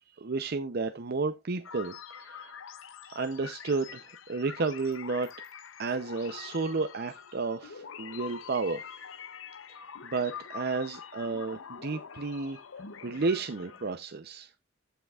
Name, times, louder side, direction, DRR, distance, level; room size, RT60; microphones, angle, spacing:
voice 1, 0.2-2.5 3.1-5.3 5.8-9.2 10.0-12.6 13.0-14.5, right 4 dB, 55° right, 0.6 m, -32 dB
sound 1, 1.6-13.9, left 7 dB, 90° left, 0.7 m, -45 dB
15.0 x 5.8 x 2.4 m
head